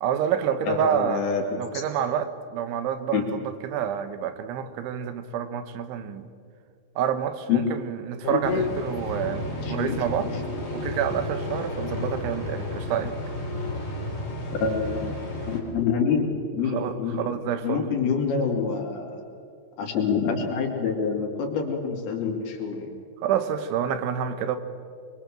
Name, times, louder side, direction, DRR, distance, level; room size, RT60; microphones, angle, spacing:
voice 1, 0.0-1.3 1.6-6.3 7.0-10.3 10.7-13.1 16.7-18.0 23.2-24.6, right 9 dB, 90° right, 10 dB, 3.7 m, -28 dB
voice 2, 0.7-1.6 3.1-3.3 7.5-7.6 8.2-8.6 9.6-10.0 14.6-15.2 15.5-17.2 17.6-19.2 19.8-22.9, left 6 dB, 60° left, 1 dB, 4.3 m, -26 dB
sound 1, 8.4-15.6, left 2 dB, 15° left, 3.1 m, -32 dB
24.0 x 23.0 x 7.5 m, 2.3 s
omnidirectional pair, 5.3 m